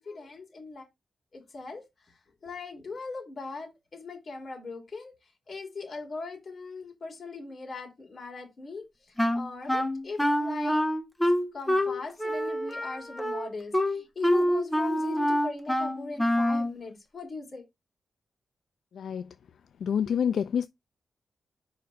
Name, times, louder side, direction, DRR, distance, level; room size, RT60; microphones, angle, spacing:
voice 1, 0.0-0.8 1.3-1.8 2.4-5.1 5.5-8.8 9.3-10.8 11.5-17.6, left 3 dB, 35° left, 2.9 m, -39 dB
Wind instrument woodwind instrument, 9.2-16.7, equal, 5° left, 0.8 m, -26 dB
voice 2, 18.9-19.3 19.8-20.7, left 8 dB, 70° left, 0.3 m, -27 dB
5.1 x 4.0 x 5.5 m
wide cardioid pair, 165°, 0 cm